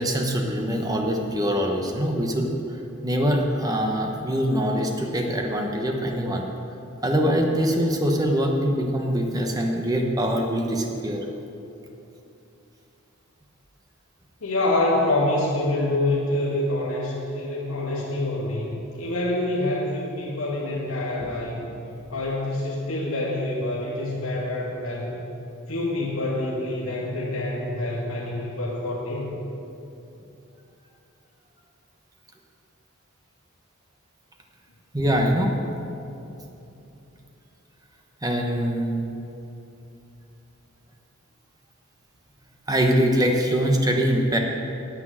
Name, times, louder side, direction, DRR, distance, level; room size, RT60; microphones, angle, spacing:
voice 1, 0.0-2.5 3.0-6.5 7.0-11.2 21.2-21.3 34.9-35.5 38.2-39.0 42.7-44.4, equal, 15° right, 2 dB, 1.1 m, -23 dB
voice 2, 14.4-21.6 22.1-25.2 25.7-29.3, left 1 dB, 85° left, -5 dB, 2.0 m, -26 dB
9.7 x 8.8 x 7.6 m, 2.9 s
head